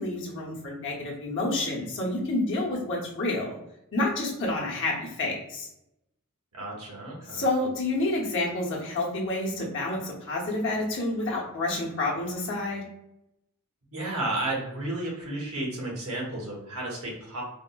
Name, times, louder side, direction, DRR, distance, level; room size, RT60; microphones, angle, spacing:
voice 1, 0.0-3.6 3.9-5.7 7.3-12.9, left 2 dB, 60° left, -2 dB, 0.8 m, -29 dB
voice 2, 6.5-7.4 13.9-17.4, right 2 dB, 70° right, -2 dB, 1.0 m, -32 dB
3.5 x 2.0 x 2.2 m, 0.84 s
head